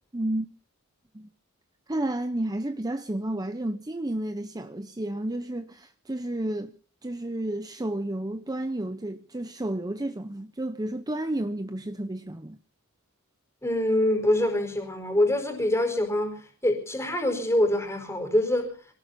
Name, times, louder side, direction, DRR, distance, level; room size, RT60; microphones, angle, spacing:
voice 1, 0.1-0.5 1.1-1.3 1.9-6.7 7.0-12.6, right 1 dB, 15° right, 0.8 m, -31 dB
voice 2, 13.6-18.7, left 1 dB, 10° left, 4.8 m, -25 dB
27.5 x 19.0 x 2.8 m
head